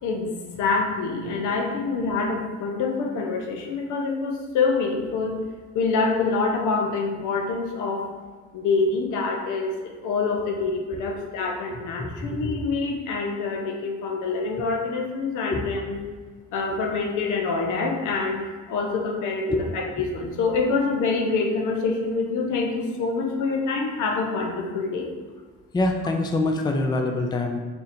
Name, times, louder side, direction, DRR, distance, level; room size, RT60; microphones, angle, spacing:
voice 1, 0.0-5.3 5.7-8.1 8.5-16.0 16.5-25.1, left 4 dB, 85° left, 2 dB, 0.6 m, -26 dB
voice 2, 12.0-12.6 15.5-15.6 19.5-19.6 25.7-27.6, left 2 dB, 15° left, 3 dB, 0.4 m, -25 dB
2.8 x 2.5 x 4.2 m, 1.5 s
cardioid pair, 90°, 30 cm